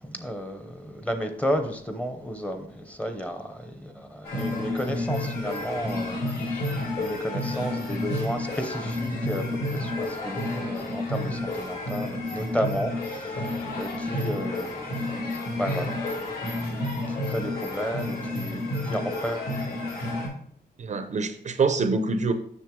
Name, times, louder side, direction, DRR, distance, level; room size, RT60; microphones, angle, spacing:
voice 1, 0.0-6.7 7.0-15.0 15.5-16.0 16.6-16.8 17.3-19.5, equal, 10° left, 0.8 m, -32 dB
sound 1, 4.2-20.3, left 1 dB, 70° left, 3.6 m, -30 dB
voice 2, 20.8-22.3, right 4 dB, 45° right, 0.6 m, -25 dB
7.6 x 6.4 x 3.7 m
wide cardioid pair, 160°, 17 cm